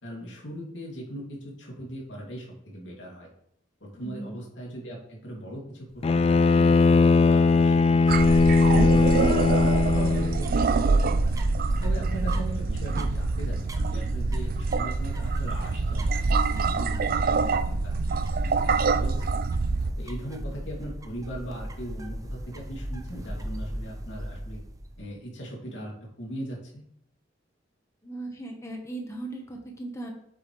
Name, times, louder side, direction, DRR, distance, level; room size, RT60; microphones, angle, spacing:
voice 1, 0.0-3.3 3.8-8.1 8.4-9.4 9.9-11.4 11.8-18.6 18.8-19.4 20.0-24.6 25.0-26.8, right 1 dB, 85° left, -2 dB, 2.5 m, -39 dB
voice 2, 3.9-4.4 28.0-30.1, right 2 dB, 15° left, 1 dB, 1.1 m, -37 dB
Bowed string instrument, 6.0-10.5, left 3 dB, 35° left, 0.3 m, -19 dB
sound 1, 8.1-19.9, right 4 dB, 50° right, 0.4 m, -25 dB
sound 2, 9.9-25.1, equal, 20° right, 0.7 m, -35 dB
7.9 x 7.5 x 3.2 m, 0.70 s
head